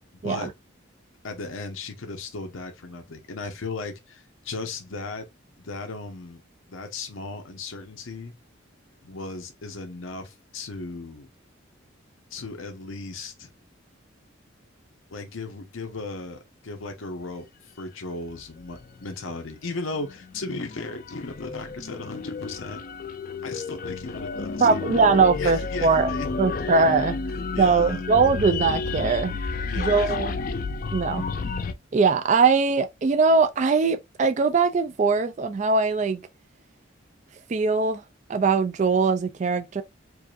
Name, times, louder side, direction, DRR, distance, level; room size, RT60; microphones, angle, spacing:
voice 1, 1.2-5.3 5.6-6.4 6.7-8.3 9.0-11.3 12.3-13.5 15.1-17.5 17.8-22.8 23.4-24.8 25.4-26.3 27.5-28.0 29.6-30.1, left 3 dB, 80° left, 0.8 m, -36 dB
sound 1, 18.6-19.4 19.9-31.7, left 4 dB, 45° left, 0.4 m, -31 dB
voice 2, 24.6-26.1 26.4-27.2 27.6-29.3 29.8-30.4 30.9-31.2 31.9-36.2 37.5-38.0 38.3-39.8, right 4 dB, 35° right, 0.3 m, -21 dB
4.7 x 2.6 x 2.4 m
head